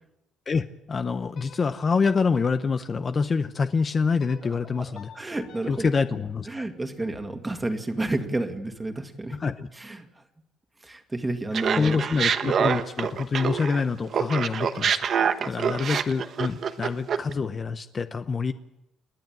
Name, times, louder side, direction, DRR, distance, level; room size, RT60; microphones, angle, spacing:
voice 1, 0.5-5.1 5.7-6.6 9.3-9.7 11.8-15.0 15.4-18.5, left 5 dB, 30° left, 9 dB, 0.8 m, -26 dB
sound 1, 1.3-3.5 4.2-7.3, left 6 dB, 55° left, 2.6 m, -52 dB
voice 2, 4.5-5.9 6.5-9.4 9.7-10.1 10.8-12.0 12.4-12.5 15.2-15.8, right 2 dB, 15° right, 6 dB, 2.1 m, -31 dB
Laughter, 11.5-13.8 14.1-17.3, right 7 dB, 45° right, 1.2 m, -25 dB
29.5 x 11.0 x 9.0 m, 0.89 s
cardioid pair, 140°, 0 cm